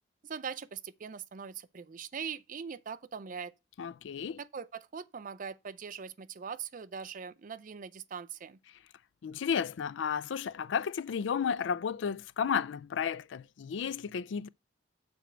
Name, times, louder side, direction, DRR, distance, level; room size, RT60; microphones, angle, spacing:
voice 1, 0.2-3.5 4.4-8.6, right 6 dB, 45° right, 0.5 m, -41 dB
voice 2, 3.8-4.4 9.2-14.5, left 7 dB, 85° left, 0.4 m, -33 dB
6.9 x 4.5 x 6.2 m
head